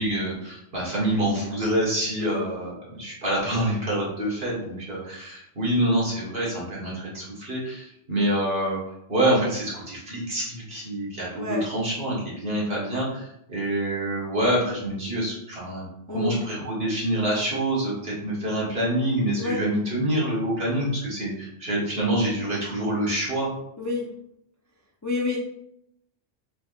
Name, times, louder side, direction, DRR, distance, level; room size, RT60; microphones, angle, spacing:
voice 1, 0.0-8.8 9.1-23.5, right 1 dB, 50° right, -6 dB, 1.6 m, -26 dB
voice 2, 11.3-11.7 16.1-16.4 19.4-19.6 23.8-24.1 25.0-25.4, left 3 dB, 25° left, -3 dB, 0.3 m, -29 dB
4.9 x 3.4 x 2.4 m, 0.78 s
omnidirectional pair, 1.3 m